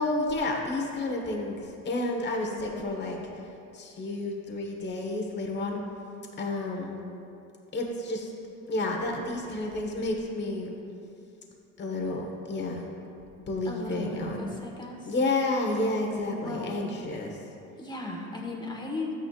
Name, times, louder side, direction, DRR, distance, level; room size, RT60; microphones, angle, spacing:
voice 1, 0.0-3.4 3.7-5.8 6.4-6.9 7.7-8.3 8.7-10.7 11.8-12.8 13.5-14.5 15.1-17.4, left 2 dB, 35° left, 1 dB, 1.3 m, -30 dB
voice 2, 13.6-15.1 16.4-16.8 17.8-19.1, left 2 dB, 15° left, 0 dB, 1.4 m, -36 dB
12.5 x 9.2 x 2.4 m, 2.7 s
cardioid pair, 115°, 31 cm